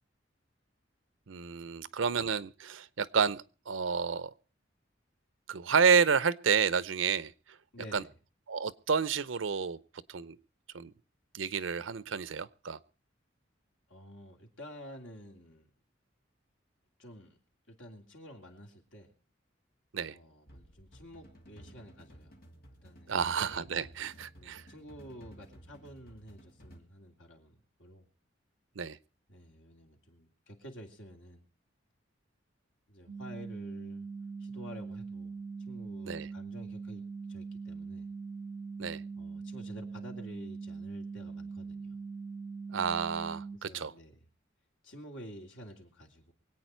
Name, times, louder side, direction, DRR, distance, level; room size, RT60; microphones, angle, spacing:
voice 1, 1.3-4.3 5.5-7.3 7.9-8.0 8.5-9.8 10.1-10.4 10.7-10.9 11.3-12.8 19.9-20.1 23.1-24.6 28.8-29.0 36.0-36.3 38.8-39.0 42.7-43.9, right 6 dB, 90° right, 18 dB, 0.7 m, -30 dB
voice 2, 7.7-8.1 13.9-15.7 17.0-17.4 17.7-19.1 20.1-22.4 22.8-23.2 24.3-28.1 29.3-31.5 32.9-34.1 34.4-35.4 35.6-37.0 37.3-38.1 39.1-42.0 43.5-44.2 44.8-46.3, equal, 80° left, 2 dB, 3.0 m, -50 dB
sound 1, 20.5-26.8, equal, 50° left, 2.9 m, -55 dB
sound 2, 33.1-43.6, right 4 dB, 65° right, 1.3 m, -42 dB
24.0 x 8.8 x 4.5 m, 0.36 s
head